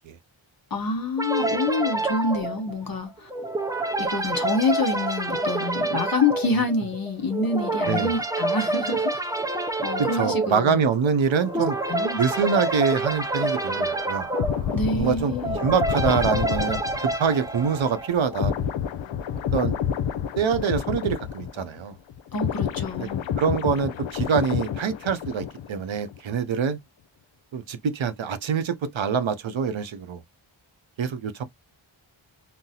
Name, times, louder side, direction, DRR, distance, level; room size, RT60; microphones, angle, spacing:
voice 1, 0.7-3.3 4.0-9.1 9.8-10.8 11.5-12.2 14.7-15.6 22.3-23.2, left 3 dB, 45° left, 1.1 m, -27 dB
sound 1, 1.2-18.4, right 2 dB, 10° right, 0.4 m, -28 dB
sound 2, 9.0-17.2, right 2 dB, 35° right, 1.0 m, -46 dB
voice 2, 10.0-11.8 12.2-14.3 15.0-18.7 19.5-19.8 20.4-21.9 23.0-23.1 23.4-26.8 27.5-30.2 31.0-31.4, right 6 dB, 70° right, 0.6 m, -25 dB
sound 3, 14.3-21.8 22.1-25.8 26.1-26.4, left 8 dB, 65° left, 0.5 m, -29 dB
3.8 x 2.0 x 2.7 m
wide cardioid pair, 75°, 49 cm